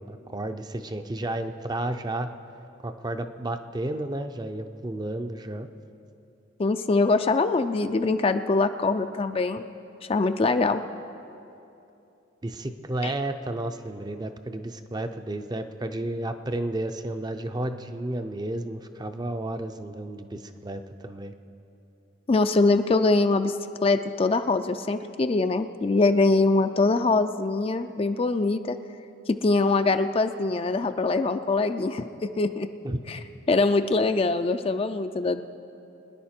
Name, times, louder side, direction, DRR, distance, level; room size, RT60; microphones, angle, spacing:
voice 1, 0.0-2.3 2.8-5.7 12.4-21.3 32.8-33.0, right 1 dB, 20° right, 8 dB, 0.5 m, -32 dB
voice 2, 6.6-9.6 10.1-10.8 13.0-13.1 22.3-23.6 23.8-28.8 29.3-32.7 33.1-33.2 33.5-35.4, left 3 dB, 30° left, 9 dB, 0.4 m, -23 dB
24.0 x 10.0 x 4.4 m, 2.8 s
head